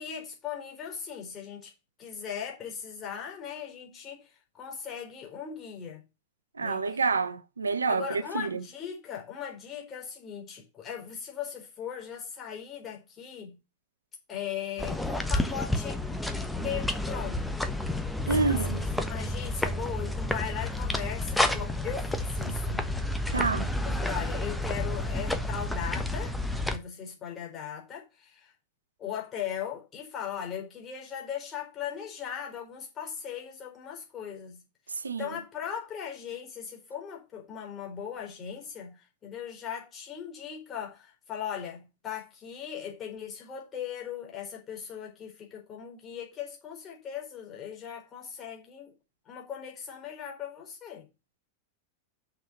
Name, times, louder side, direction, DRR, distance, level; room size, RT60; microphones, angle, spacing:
voice 1, 0.0-1.7 2.0-6.0 6.6-7.0 7.9-13.6 14.3-16.0 16.5-17.5 18.3-22.9 23.3-23.6 23.8-26.3 26.7-28.5 29.0-34.6 35.2-48.9 49.3-51.1, left 8 dB, 25° left, 4.2 m, -38 dB
voice 2, 6.6-8.6 18.3-18.8 23.3-23.7 34.9-35.3, right 4 dB, 75° right, 0.7 m, -28 dB
sound 1, 14.8-26.8, left 1 dB, 5° left, 1.2 m, -30 dB
6.8 x 6.3 x 6.8 m
figure-of-eight pair, 90°, 0 cm